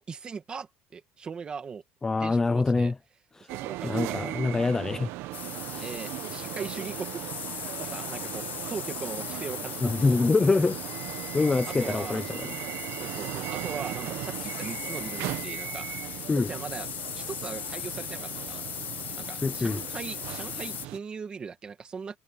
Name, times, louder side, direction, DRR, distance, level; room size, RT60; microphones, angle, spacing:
voice 1, 0.0-1.8 2.2-2.9 3.5-4.3 5.8-7.2 7.8-10.2 11.7-12.2 13.0-15.9 16.4-16.9 17.1-18.6 19.1-22.2, right 5 dB, 20° right, 2.0 m, -39 dB
voice 2, 2.0-2.9 3.4-3.5 3.8-5.1 5.7-5.9 9.8-10.8 11.3-12.5 16.3-16.5 19.4-19.8, left 3 dB, 10° left, 0.6 m, -25 dB
sound 1, 3.5-21.0, right 17 dB, 55° right, 0.9 m, -38 dB
sound 2, 5.3-20.9, left 11 dB, 35° left, 7.9 m, -38 dB
cardioid pair, 180°, 5 cm